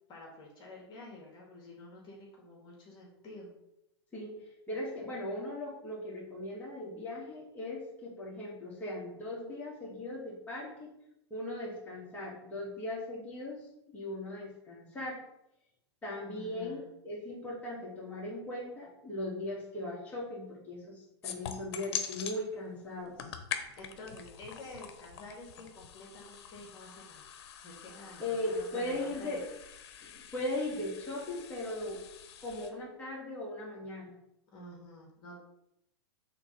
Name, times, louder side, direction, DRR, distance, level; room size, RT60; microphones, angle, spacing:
voice 1, 0.1-3.5 16.3-16.8 23.7-27.3 27.6-29.4 34.5-35.4, left 1 dB, 30° left, -2 dB, 2.3 m, -49 dB
voice 2, 4.7-10.9 11.3-15.2 16.0-23.2 28.2-29.4 30.0-32.0 32.4-34.1, left 1 dB, 10° left, -7 dB, 2.4 m, -38 dB
sound 1, 21.2-22.4 23.0-32.7, left 8 dB, 65° left, 0.9 m, -44 dB
5.9 x 3.8 x 5.5 m, 0.82 s
hypercardioid pair, 125°, 14 cm